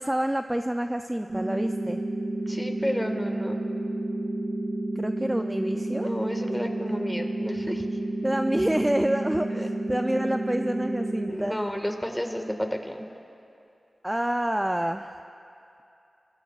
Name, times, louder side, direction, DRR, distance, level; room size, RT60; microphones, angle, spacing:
voice 1, 0.0-2.0 5.0-6.1 8.2-11.6 14.0-15.1, right 1 dB, 15° right, 7 dB, 0.4 m, -27 dB
sound 1, 1.3-11.3, right 1 dB, 55° right, 2.5 m, -30 dB
voice 2, 2.5-3.6 5.6-7.8 9.5-9.7 11.3-13.1, equal, 10° left, 4 dB, 1.8 m, -31 dB
24.5 x 16.0 x 2.5 m, 2.7 s
cardioid pair, 45°, 0 cm